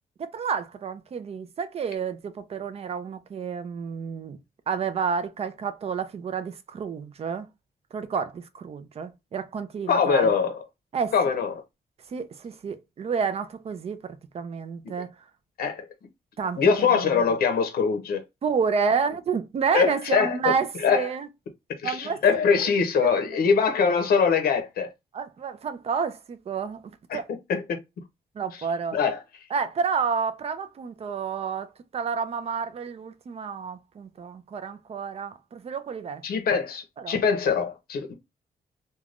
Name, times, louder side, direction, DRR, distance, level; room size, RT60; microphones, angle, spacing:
voice 1, 0.2-4.4 4.7-7.5 7.9-10.3 10.9-11.1 12.1-15.1 16.4-17.2 18.4-21.3 21.8-22.7 23.0-23.1 25.1-27.3 28.4-29.0 29.5-36.2 37.0-37.2, right 6 dB, 40° right, 0.4 m, -30 dB
voice 2, 9.9-10.6 11.1-11.6 15.6-15.9 16.6-18.2 19.7-20.4 20.8-21.1 21.7-24.9 27.1-27.2 27.5-27.8 28.9-29.2 36.2-38.1, left 6 dB, 70° left, 0.6 m, -23 dB
3.2 x 2.2 x 2.4 m
wide cardioid pair, 155°, 16 cm